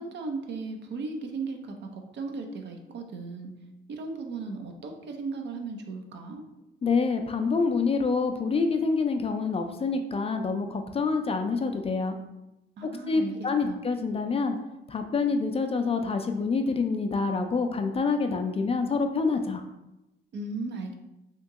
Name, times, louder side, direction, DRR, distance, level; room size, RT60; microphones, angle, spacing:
voice 1, 0.0-3.5 3.9-6.4 12.8-13.3 13.7-13.8 20.3-20.9, right 3 dB, 60° right, 4 dB, 0.6 m, -36 dB
voice 2, 6.8-12.2 12.8-14.6 14.9-19.6, left 4 dB, 30° left, 6 dB, 0.4 m, -27 dB
2.9 x 2.7 x 3.5 m, 0.94 s
cardioid pair, 90°, 20 cm